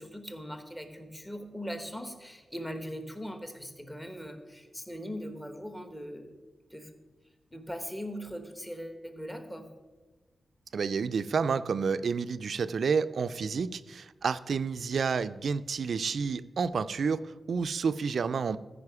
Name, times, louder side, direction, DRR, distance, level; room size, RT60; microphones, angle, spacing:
voice 1, 0.0-6.4 6.7-7.0 7.5-9.7, equal, 10° left, 7 dB, 0.9 m, -40 dB
voice 2, 10.7-18.6, right 5 dB, 65° right, 13 dB, 0.3 m, -30 dB
14.5 x 5.0 x 4.8 m, 1.2 s
wide cardioid pair, 135°, 0 cm